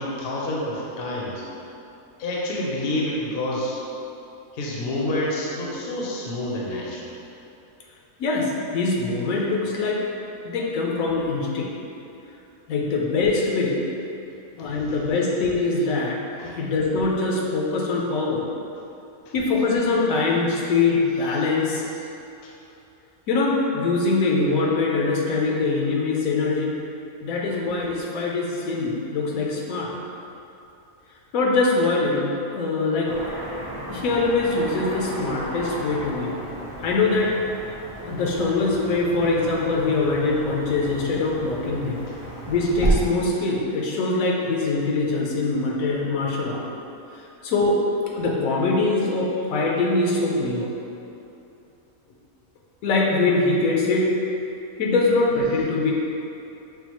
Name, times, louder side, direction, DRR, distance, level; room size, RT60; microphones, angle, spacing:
voice 1, 0.0-1.4 2.2-3.8 4.5-7.1 14.5-14.6 16.4-16.5 19.3-19.4 22.4-22.5, left 1 dB, 55° left, -4 dB, 0.7 m, -28 dB
voice 2, 8.2-10.0 10.4-11.7 12.7-13.8 14.6-18.4 19.3-21.8 23.3-26.7 27.2-29.9 31.3-33.1 33.9-36.4 36.8-37.3 38.0-42.0 42.5-46.6 47.4-47.8 48.1-50.7 52.8-54.1 54.8-55.9, left 3 dB, 80° left, -3 dB, 1.0 m, -23 dB
Car passing by / Traffic noise roadway noise, 33.1-42.9, right 2 dB, 35° right, 0.5 m, -33 dB
5.5 x 2.3 x 2.9 m, 2.8 s
omnidirectional pair, 1.4 m